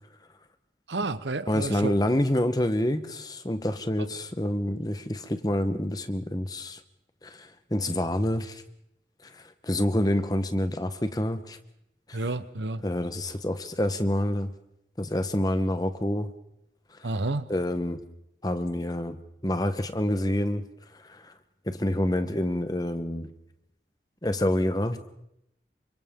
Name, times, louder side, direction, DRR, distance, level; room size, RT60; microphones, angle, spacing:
voice 1, 0.9-1.9 4.0-4.1 12.1-12.8 17.0-17.5, right 2 dB, 85° right, 13 dB, 1.0 m, -30 dB
voice 2, 1.5-6.8 7.2-8.6 9.6-11.6 12.1-12.2 12.8-14.5 15.0-16.3 17.5-18.0 18.4-19.2 19.4-20.6 21.1-21.3 21.7-23.3 24.2-25.0, left 1 dB, 20° left, 10 dB, 1.1 m, -27 dB
28.5 x 25.0 x 3.7 m, 0.81 s
head